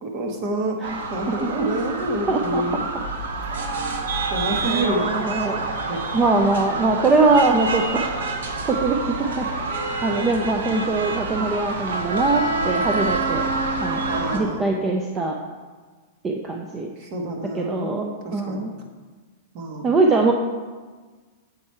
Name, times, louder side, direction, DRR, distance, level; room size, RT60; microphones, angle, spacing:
voice 1, 0.0-0.8 1.1-2.8 4.3-5.1 5.9-6.0 14.1-14.8 17.0-18.6 19.5-19.9, right 1 dB, 40° right, 2 dB, 1.2 m, -28 dB
sound 1, 0.8-14.4, right 3 dB, 85° right, 0.9 m, -27 dB
voice 2, 1.4-1.8 2.3-2.6 4.6-5.6 6.1-8.1 8.7-9.5 10.0-13.5 13.8-14.0 14.3-15.4 16.2-16.9 17.5-18.7 19.8-20.3, right 3 dB, 20° right, 2 dB, 0.5 m, -22 dB
7.7 x 4.2 x 4.6 m, 1.4 s
supercardioid pair, 145°, 0 cm